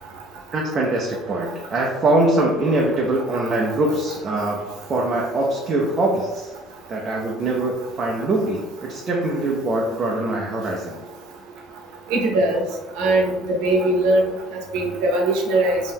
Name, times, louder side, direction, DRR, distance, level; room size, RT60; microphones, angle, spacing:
voice 1, 0.5-6.5 6.9-11.0, right 2 dB, 25° right, -2 dB, 0.4 m, -23 dB
voice 2, 12.1-12.6 13.0-14.3 14.7-15.8, right 2 dB, 80° right, 0 dB, 0.6 m, -20 dB
2.6 x 2.2 x 3.3 m, 1.1 s
cardioid pair, 165°, 0 cm